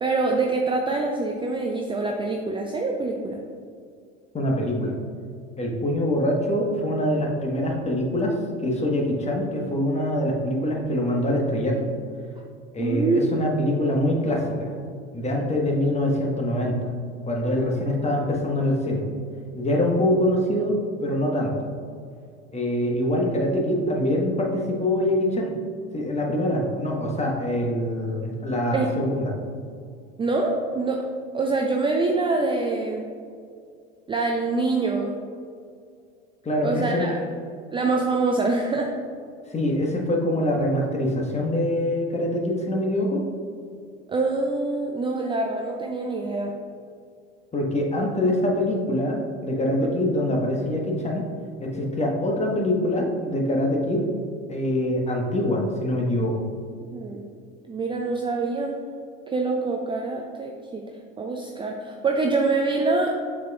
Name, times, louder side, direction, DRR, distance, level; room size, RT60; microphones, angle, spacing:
voice 1, 0.0-3.4 12.8-13.2 28.7-28.9 30.2-31.0 31.3-33.1 34.1-35.1 36.6-37.1 37.7-38.9 44.1-46.5 56.9-57.3 57.7-58.8 59.3-60.8 61.2-63.2, right 3 dB, 15° right, 1 dB, 0.4 m, -25 dB
voice 2, 4.3-4.9 5.6-11.8 12.7-14.7 15.1-16.8 17.3-19.1 19.5-21.5 22.5-25.5 25.9-29.3 36.4-37.0 39.5-43.2 47.5-51.2 51.6-54.1 54.5-56.5, left 1 dB, 20° left, 0 dB, 1.2 m, -24 dB
7.1 x 6.0 x 2.4 m, 2.3 s
hypercardioid pair, 75°, 34 cm